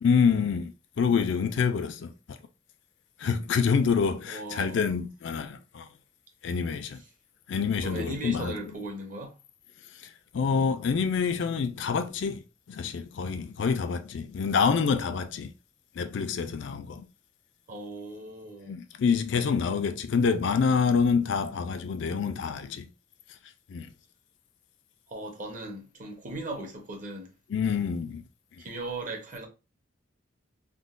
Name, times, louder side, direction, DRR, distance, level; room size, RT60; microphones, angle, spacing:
voice 1, 0.0-2.4 3.2-5.9 6.4-7.0 7.5-8.6 10.0-15.5 16.0-17.1 18.7-22.9 23.7-23.9 27.5-28.2, left 6 dB, 65° left, 0.4 m, -27 dB
voice 2, 4.3-4.9 7.8-9.3 17.7-18.8 25.1-27.3 28.6-29.5, right 2 dB, 40° right, 0.8 m, -38 dB
3.7 x 2.1 x 2.4 m
head